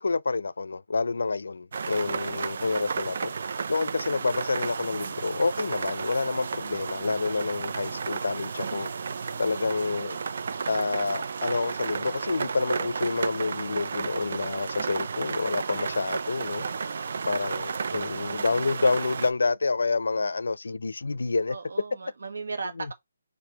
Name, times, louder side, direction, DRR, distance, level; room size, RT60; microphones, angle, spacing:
voice 1, 0.0-3.3 3.7-8.9 9.4-10.2 10.7-16.7 17.3-21.6, left 3 dB, 70° left, 0.3 m, -28 dB
sound 1, 1.7-19.3, right 5 dB, 40° right, 0.4 m, -33 dB
voice 2, 9.2-9.5 16.6-17.1 21.5-22.9, right 4 dB, 70° right, 1.3 m, -38 dB
4.5 x 2.6 x 4.5 m
hypercardioid pair, 180°, 0 cm